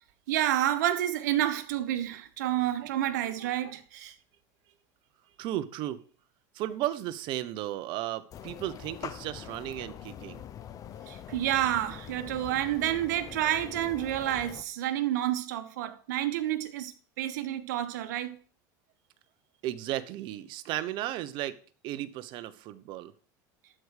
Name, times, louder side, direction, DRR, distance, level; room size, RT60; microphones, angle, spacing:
voice 1, 0.3-4.1 11.1-18.4, right 12 dB, 85° right, 1.2 m, -29 dB
voice 2, 5.4-6.0 6.5-10.4 19.6-21.5 21.8-23.1, right 14 dB, 60° right, 0.9 m, -34 dB
sound 1, 8.3-14.6, left 9 dB, 40° left, 0.9 m, -44 dB
12.5 x 4.9 x 6.5 m
supercardioid pair, 115°, 9 cm